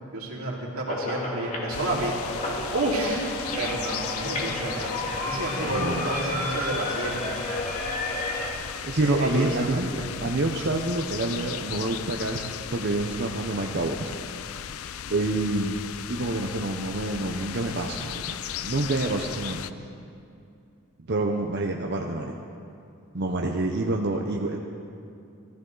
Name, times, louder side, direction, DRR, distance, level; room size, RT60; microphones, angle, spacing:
voice 1, 0.1-2.1 2.5-3.3 3.5-7.4 9.0-10.1, right 1 dB, 85° right, -4 dB, 2.6 m, -30 dB
sound 1, 0.9-8.5, left 1 dB, 35° left, 1.8 m, -32 dB
sound 2, 1.7-19.7, left 9 dB, 80° left, 0.4 m, -37 dB
voice 2, 5.6-6.1 8.8-9.9 10.2-14.1 15.1-15.8 16.1-19.6 21.1-22.3 23.1-24.6, right 2 dB, 50° right, 1 dB, 0.7 m, -27 dB
16.0 x 14.0 x 3.9 m, 2.5 s
head